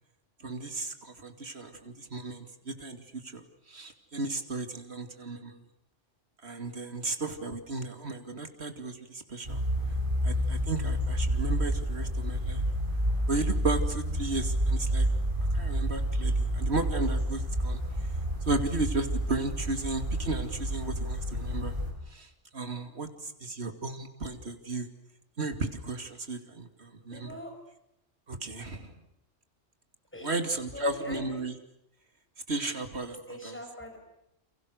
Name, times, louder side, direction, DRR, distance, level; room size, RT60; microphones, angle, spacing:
voice 1, 0.4-5.6 6.4-9.6 10.2-12.6 13.3-15.1 15.5-17.8 18.5-21.8 22.1-24.9 25.4-27.4 28.3-29.0 30.2-31.5 32.5-33.6, right 2 dB, 60° right, 7 dB, 2.8 m, -34 dB
sound 1, 9.4-21.9, equal, 45° right, 6.4 m, -29 dB
voice 2, 27.1-27.5 30.1-30.4 30.7-31.4 33.3-34.0, left 1 dB, 10° left, 2 dB, 6.3 m, -42 dB
29.0 x 29.0 x 6.6 m, 0.81 s
omnidirectional pair, 1.2 m